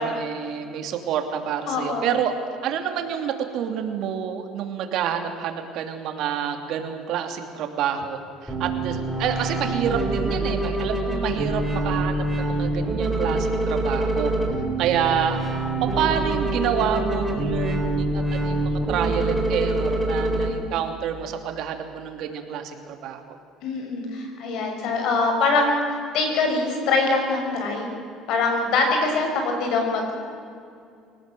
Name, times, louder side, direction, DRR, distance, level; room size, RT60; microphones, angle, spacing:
voice 1, 0.0-2.3 2.6-14.3 14.8-15.4 15.8-23.4, right 8 dB, 65° right, 5 dB, 2.8 m, -28 dB
voice 2, 1.7-2.1 23.6-27.9 28.3-30.1, left 3 dB, 70° left, 3 dB, 6.4 m, -23 dB
sound 1, 8.5-20.5, right 2 dB, 5° right, 4.4 m, -25 dB
24.5 x 18.0 x 7.8 m, 2.5 s
cardioid pair, 120°, 0 cm